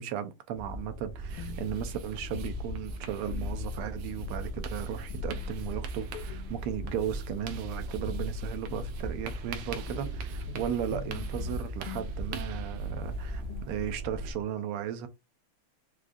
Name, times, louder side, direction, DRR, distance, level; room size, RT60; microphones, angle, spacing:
voice 1, 0.0-15.1, right 9 dB, 90° right, 1.5 m, -36 dB
sound 1, 0.5-14.3, right 2 dB, 40° right, 1.0 m, -39 dB
sound 2, 1.3-14.4, left 5 dB, 85° left, 1.5 m, -42 dB
sound 3, 1.3-13.9, right 8 dB, 75° right, 1.2 m, -48 dB
4.8 x 2.3 x 2.5 m
omnidirectional pair, 2.4 m